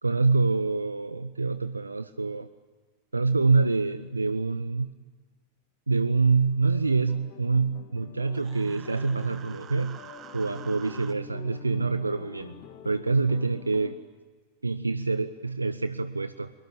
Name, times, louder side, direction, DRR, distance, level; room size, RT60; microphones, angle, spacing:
voice 1, 0.0-2.5 3.1-4.9 5.9-10.0 10.3-12.5 12.8-14.0 14.6-16.5, right 4 dB, 80° right, 14 dB, 0.7 m, -26 dB
sound 1, 6.7-13.9, left 8 dB, 45° left, 2.2 m, -46 dB
Human voice, 8.3-11.1, right 9 dB, 30° right, 1.4 m, -47 dB
22.5 x 22.0 x 8.8 m, 1.4 s
figure-of-eight pair, 90°, 0 cm